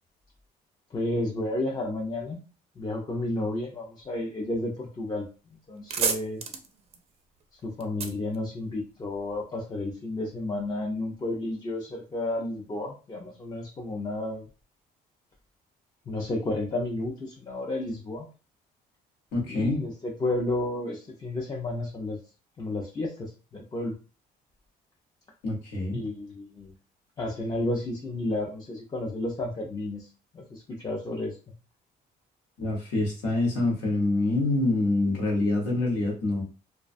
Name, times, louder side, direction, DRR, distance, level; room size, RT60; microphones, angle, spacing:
voice 1, 0.9-2.4 2.8-5.2 5.7-6.4 7.6-14.5 16.1-18.3 19.5-22.2 22.6-24.0 25.9-26.7 27.2-30.1 30.3-31.4, left 2 dB, 25° left, -2 dB, 0.5 m, -32 dB
sound 1, 5.2-5.3 5.6-9.2, right 6 dB, 35° right, 0.4 m, -33 dB
voice 2, 19.3-19.8 25.4-26.0 32.6-36.4, left 2 dB, 90° left, -1 dB, 1.1 m, -26 dB
2.3 x 2.2 x 2.5 m, 0.34 s
cardioid pair, 110°, 17 cm